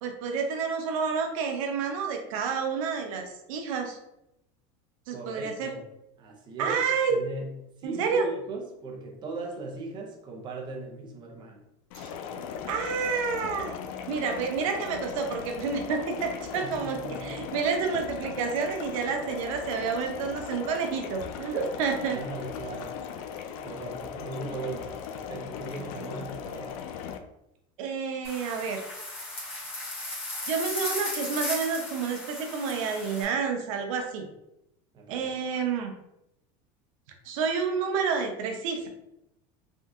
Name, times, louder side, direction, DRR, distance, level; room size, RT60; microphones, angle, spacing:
voice 1, 0.0-4.0 5.1-5.7 6.6-7.2 7.8-8.3 11.9-12.1 12.7-13.8 14.1-17.0 17.2-22.2 27.8-28.8 30.5-34.3 35.1-35.9 37.2-38.9, right 5 dB, 90° right, 4 dB, 0.6 m, -29 dB
voice 2, 5.1-5.8 6.2-6.8 7.1-7.5 7.8-11.6 16.6-17.4 22.1-23.3 23.6-26.8 34.9-35.3, right 3 dB, 25° right, 0 dB, 0.7 m, -38 dB
sound 1, 11.9-27.2, left 7 dB, 80° left, 0.4 m, -38 dB
sound 2, 28.2-33.2, left 2 dB, 35° left, 1.3 m, -36 dB
3.5 x 2.6 x 2.4 m, 0.84 s
cardioid pair, 150°, 17 cm